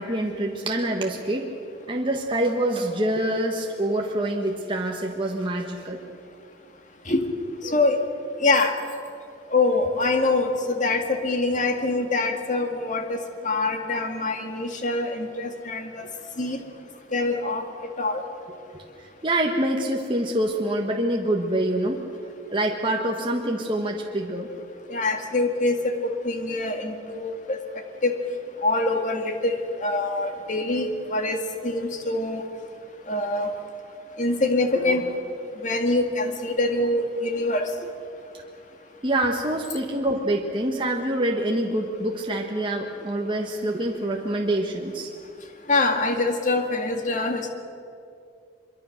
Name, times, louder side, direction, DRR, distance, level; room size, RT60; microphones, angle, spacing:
voice 1, 0.0-1.5 1.9-6.0 18.7-18.8 19.2-22.0 22.5-24.5 39.0-45.1, right 1 dB, 25° right, 0 dB, 1.4 m, -26 dB
voice 2, 7.6-8.0 8.4-8.8 9.5-10.5 10.8-13.2 13.4-16.1 16.4-16.6 17.1-17.6 18.0-18.2 24.9-27.6 28.0-28.2 28.6-32.4 33.1-33.6 34.2-35.1 35.6-37.7 45.7-47.5, left 2 dB, 40° left, 5 dB, 2.0 m, -24 dB
24.5 x 23.5 x 6.6 m, 2.6 s
head